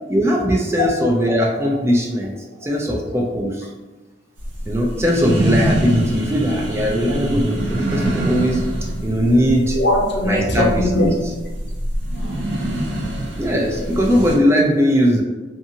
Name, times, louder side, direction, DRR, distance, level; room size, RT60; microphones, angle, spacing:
voice 1, 0.1-2.3 2.6-3.7 4.7-8.6 9.0-9.8 10.2-11.1 13.4-15.2, equal, 15° right, -1 dB, 0.3 m, -19 dB
sound 1, 4.4-14.4, right 1 dB, 75° right, 0.7 m, -25 dB
voice 2, 9.7-11.3 12.1-12.7, left 1 dB, 60° left, -1 dB, 0.6 m, -21 dB
2.7 x 2.5 x 2.7 m, 1.2 s
head